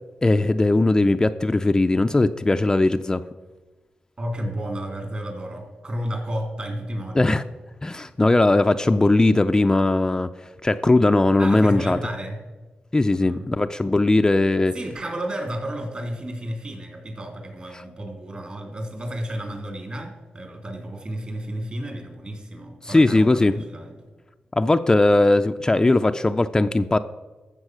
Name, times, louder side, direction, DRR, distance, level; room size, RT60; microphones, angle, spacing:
voice 1, 0.2-3.2 7.1-7.4 7.8-10.3 10.6-12.0 12.9-14.7 22.8-23.6 24.5-27.0, left 2 dB, 20° left, 8 dB, 0.4 m, -19 dB
voice 2, 4.2-7.4 11.4-12.4 13.2-13.5 14.7-23.9, right 1 dB, 40° right, 4 dB, 3.1 m, -32 dB
13.0 x 7.4 x 6.2 m, 1.2 s
cardioid pair, 80°, 3 cm